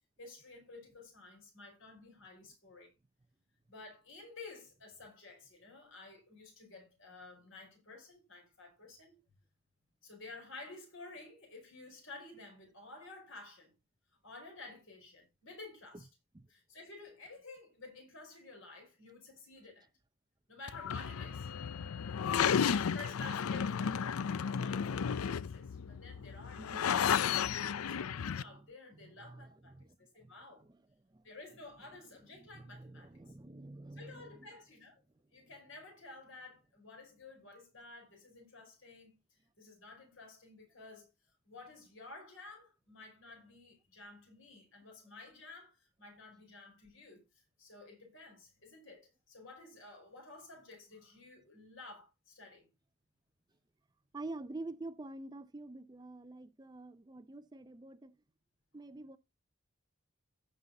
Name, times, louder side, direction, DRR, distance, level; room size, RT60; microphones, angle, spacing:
voice 1, 0.2-2.9 3.7-9.2 10.0-13.7 14.2-16.1 16.5-19.9 20.5-21.5 22.5-27.1 27.5-30.6 31.2-33.3 33.9-35.0 35.3-39.2 39.6-41.1 41.5-47.2 47.6-52.7, left 3 dB, 60° left, 5.3 m, -52 dB
sound 1, 20.7-28.4, left 7 dB, 80° left, 0.5 m, -33 dB
voice 2, 28.4-29.9 30.2-30.3 30.7-30.8 31.1-31.2 32.3-34.5 54.1-58.1 58.7-59.2, right 2 dB, 20° right, 0.4 m, -47 dB
15.5 x 5.6 x 3.9 m
head